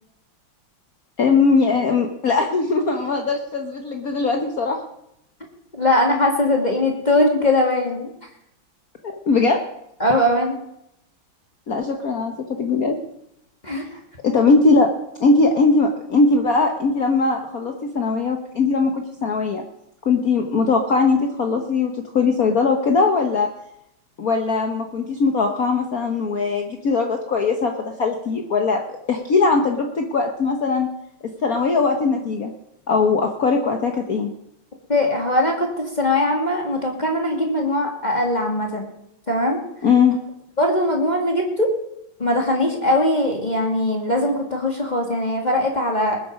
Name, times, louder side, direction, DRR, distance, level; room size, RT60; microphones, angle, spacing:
voice 1, 1.2-4.8 9.3-9.6 11.7-13.0 14.2-14.9 15.2-19.6 20.0-23.5 24.2-27.7 28.0-30.9 31.2-32.5 32.9-34.3 39.8-40.2, left 4 dB, 50° left, 4 dB, 1.4 m, -20 dB
voice 2, 5.7-8.1 10.0-10.6 13.6-13.8 34.9-38.9 39.3-39.6 40.6-41.7 42.2-46.2, left 1 dB, 20° left, 0 dB, 2.0 m, -20 dB
20.5 x 8.7 x 5.2 m, 0.80 s
omnidirectional pair, 2.2 m